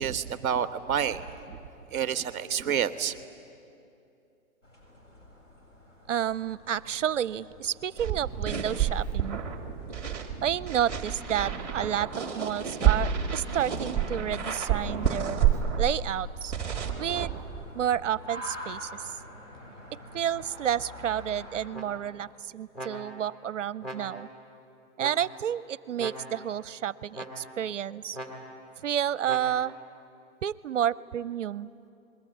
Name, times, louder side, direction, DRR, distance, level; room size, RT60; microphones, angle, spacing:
voice 1, 0.0-1.6 1.9-3.2, right 8 dB, 15° right, 10 dB, 0.5 m, -29 dB
sound 1, 4.6-21.7, equal, 55° left, 7.7 m, -48 dB
voice 2, 6.1-9.4 10.4-15.4 15.8-16.6 17.0-17.4 17.7-19.2 20.1-24.3 25.0-28.2 28.8-29.8 30.4-31.7, right 10 dB, 60° right, 19 dB, 0.5 m, -30 dB
sound 2, 8.0-17.9, right 8 dB, 5° left, 1.5 m, -29 dB
sound 3, 21.7-22.3 22.7-23.4 23.8-24.5 25.0-25.6 26.0-26.6 27.1-27.7 28.1-28.8 29.3-29.9, equal, 20° left, 2.3 m, -42 dB
28.0 x 22.0 x 9.1 m, 2.6 s
hypercardioid pair, 170°, 43 cm